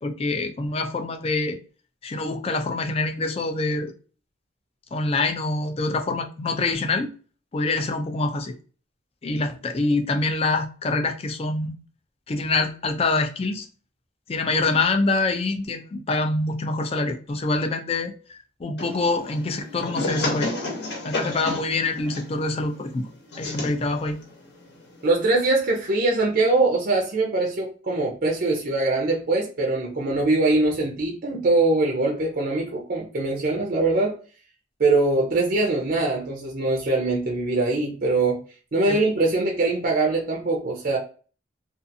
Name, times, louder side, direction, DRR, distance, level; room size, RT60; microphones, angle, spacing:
voice 1, 0.0-1.6 2.0-3.9 4.9-7.1 7.5-8.5 9.2-11.7 12.3-13.7 14.3-20.5 21.0-23.1 23.4-24.2 38.9-39.0, left 3 dB, 30° left, 0.4 m, -25 dB
sound 1, 18.8-25.4, left 2 dB, 60° left, 0.9 m, -33 dB
voice 2, 25.0-34.2 34.8-38.4 38.7-41.0, right 2 dB, 50° right, 0.5 m, -22 dB
2.5 x 2.4 x 2.6 m
head